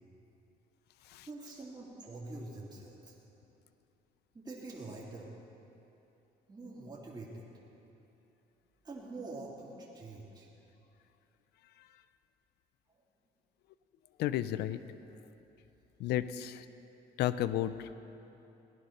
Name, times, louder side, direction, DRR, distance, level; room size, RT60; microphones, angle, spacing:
voice 1, 1.3-3.1 4.3-5.3 6.5-7.5 8.8-10.5, right 2 dB, 25° right, -5 dB, 2.9 m, -45 dB
voice 2, 14.2-14.8 16.0-16.7 17.2-17.9, left 12 dB, 75° left, 14 dB, 0.6 m, -33 dB
18.5 x 11.0 x 5.9 m, 3.0 s
cardioid pair, 110°, 17 cm